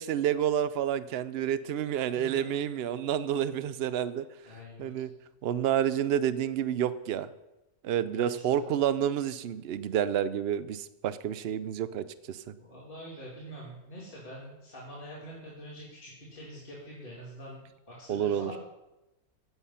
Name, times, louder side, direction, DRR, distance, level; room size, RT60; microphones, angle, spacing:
voice 1, 0.0-4.2 4.8-5.1 5.4-7.3 7.8-12.4 18.1-18.5, right 10 dB, 60° right, 15 dB, 0.7 m, -29 dB
voice 2, 2.1-2.5 4.4-5.0 8.2-8.6 12.6-18.6, equal, 35° left, -5 dB, 2.9 m, -45 dB
15.5 x 8.0 x 5.7 m, 0.95 s
omnidirectional pair, 1.6 m